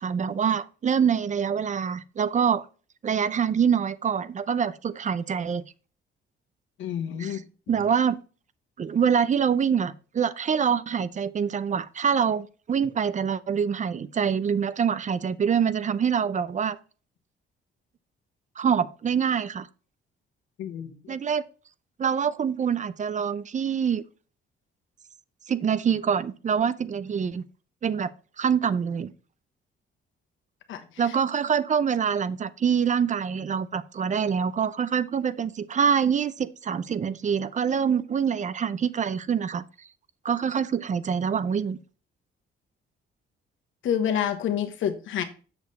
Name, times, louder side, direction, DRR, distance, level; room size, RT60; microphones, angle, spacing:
voice 1, 0.0-2.6 3.0-5.6 7.2-7.4 7.7-8.2 8.8-16.8 18.6-19.7 21.1-21.4 22.0-24.0 25.5-27.4 27.8-28.1 28.4-29.1 31.0-39.6 40.2-41.8, right 7 dB, 40° right, 0.5 m, -25 dB
voice 2, 6.8-7.4 20.6-21.0 30.7-30.8 43.8-45.2, left 9 dB, 75° left, 1.2 m, -28 dB
7.0 x 6.4 x 4.0 m
cardioid pair, 90°, 20 cm